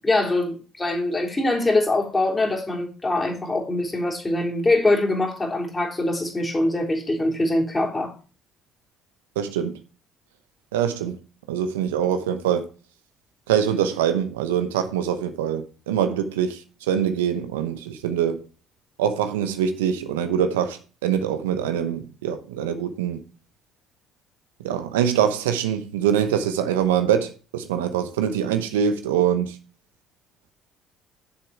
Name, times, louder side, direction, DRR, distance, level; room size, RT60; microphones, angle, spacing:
voice 1, 0.0-8.1, left 2 dB, 20° left, 3.3 m, -23 dB
voice 2, 9.4-9.7 10.7-11.2 11.5-12.7 13.5-16.6 16.9-18.4 19.0-23.2 24.6-29.6, right 9 dB, 80° right, 0.8 m, -24 dB
6.9 x 6.9 x 4.6 m
hypercardioid pair, 50°, 0 cm